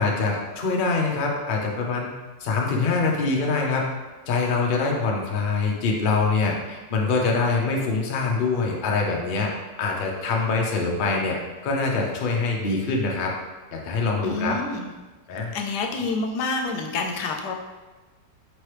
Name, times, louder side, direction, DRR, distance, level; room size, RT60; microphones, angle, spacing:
voice 1, 0.0-2.1 2.4-3.8 4.3-9.5 9.8-11.4 11.6-13.3 13.7-14.6 15.3-15.5, left 4 dB, 55° left, 0 dB, 0.5 m, -24 dB
voice 2, 14.2-14.9 15.5-17.5, left 3 dB, 85° left, 3 dB, 1.2 m, -28 dB
5.3 x 3.0 x 3.2 m, 1.2 s
omnidirectional pair, 1.7 m